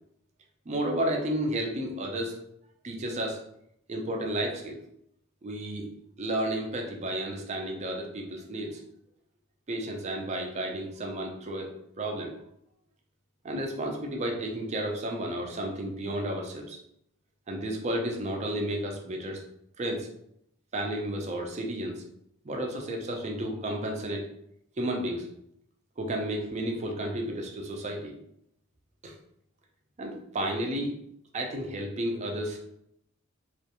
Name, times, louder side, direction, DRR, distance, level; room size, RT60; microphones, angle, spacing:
voice 1, 0.7-2.4 2.8-3.4 3.9-4.8 5.4-5.9 6.2-8.8 9.7-12.3 13.4-16.8 17.5-19.4 19.8-20.1 20.7-22.0 22.4-24.3 24.8-25.3 26.0-28.1 29.0-29.1 30.0-30.9 31.3-32.6, right 1 dB, 30° right, 1 dB, 0.4 m, -32 dB
2.4 x 2.2 x 2.8 m, 0.74 s
head